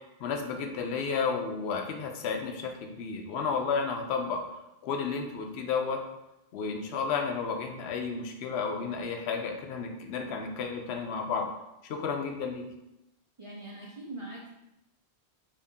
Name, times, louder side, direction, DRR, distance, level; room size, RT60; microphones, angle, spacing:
voice 1, 0.2-4.4 4.8-6.0 6.5-11.5 11.8-12.6, left 5 dB, 70° left, 3 dB, 0.8 m, -32 dB
voice 2, 13.4-14.5, right 1 dB, 40° right, -5 dB, 0.5 m, -42 dB
2.9 x 2.7 x 3.5 m, 0.91 s
omnidirectional pair, 1.1 m